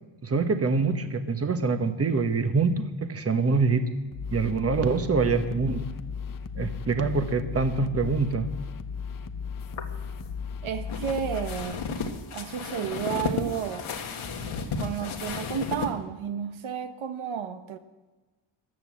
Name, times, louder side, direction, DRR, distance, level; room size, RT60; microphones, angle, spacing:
voice 1, 0.2-4.0 4.3-5.9 6.6-8.5, right 4 dB, 30° right, 8 dB, 1.2 m, -25 dB
sound 1, 4.1-11.6, left 6 dB, 40° left, 0.8 m, -36 dB
sound 2, 9.6-15.9, left 5 dB, 75° left, 1.7 m, -34 dB
voice 2, 10.6-11.8 12.3-13.9 14.8-17.8, right 8 dB, 70° right, 8 dB, 1.0 m, -32 dB
14.0 x 10.5 x 7.6 m, 1.2 s
cardioid pair, 110°, 50 cm